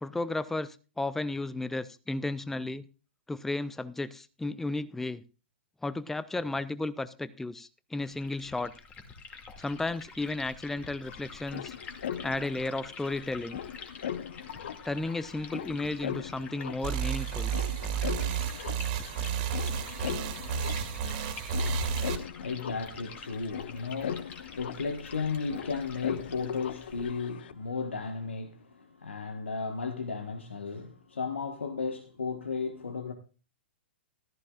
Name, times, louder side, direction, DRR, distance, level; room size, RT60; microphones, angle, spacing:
voice 1, 0.0-2.8 3.3-5.2 5.8-8.7 9.6-11.7 12.2-13.6 14.9-17.5, left 2 dB, 5° left, 0.5 m, -33 dB
Liquid, 8.0-27.1, left 4 dB, 20° left, 2.3 m, -48 dB
sound 1, 10.8-27.5, left 9 dB, 60° left, 0.8 m, -40 dB
sound 2, 16.8-22.2, right 7 dB, 45° right, 2.4 m, -31 dB
voice 2, 21.7-33.1, left 4 dB, 80° left, 1.4 m, -35 dB
14.5 x 14.0 x 2.4 m
figure-of-eight pair, 115°, 6 cm